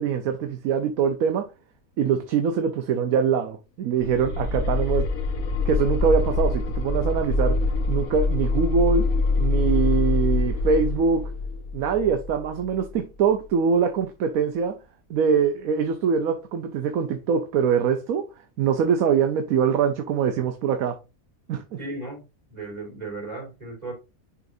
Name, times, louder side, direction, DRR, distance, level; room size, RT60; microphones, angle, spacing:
voice 1, 0.0-1.5 2.0-5.1 5.6-7.6 7.9-9.1 9.4-11.3 11.7-14.8 15.1-18.3 18.6-21.0 21.5-21.6, right 6 dB, 75° right, 1.2 m, -23 dB
sound 1, 4.0-12.9, left 3 dB, 80° left, 1.5 m, -25 dB
voice 2, 21.8-22.2 22.5-23.9, right 2 dB, 30° right, 3.8 m, -35 dB
9.9 x 3.8 x 2.6 m
omnidirectional pair, 1.5 m